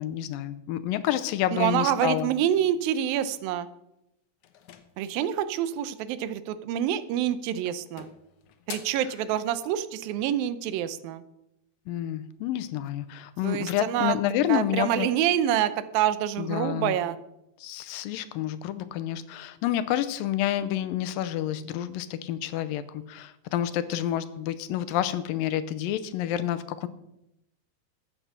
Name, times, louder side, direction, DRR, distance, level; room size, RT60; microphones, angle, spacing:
voice 1, 0.0-2.3 11.9-15.1 16.4-17.0 17.6-26.9, left 12 dB, 90° left, 13 dB, 2.4 m, -29 dB
voice 2, 1.5-3.7 5.0-8.1 8.7-11.2 13.4-14.2 14.5-17.2, right 11 dB, 85° right, 13 dB, 2.5 m, -27 dB
sound 1, 4.4-5.7 6.9-7.3 7.7-9.1, left 10 dB, 70° left, 2.2 m, -45 dB
13.5 x 8.6 x 6.0 m, 0.86 s
omnidirectional pair, 4.0 m